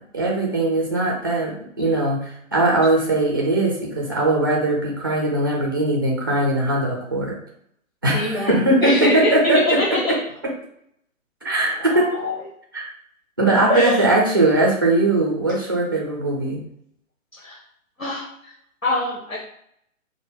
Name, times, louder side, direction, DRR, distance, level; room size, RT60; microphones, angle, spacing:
voice 1, 0.1-1.5 1.8-7.4 8.0-9.8 11.4-12.1 12.7-12.9 13.4-16.6, right 2 dB, 20° right, -2 dB, 0.3 m, -20 dB
voice 2, 8.1-10.2 11.8-12.4 13.7-14.1 17.4-17.6 18.0-18.5 18.8-19.4, left 1 dB, 85° left, -5 dB, 1.5 m, -24 dB
4.6 x 2.1 x 3.7 m, 0.71 s
figure-of-eight pair, 125°, 40 cm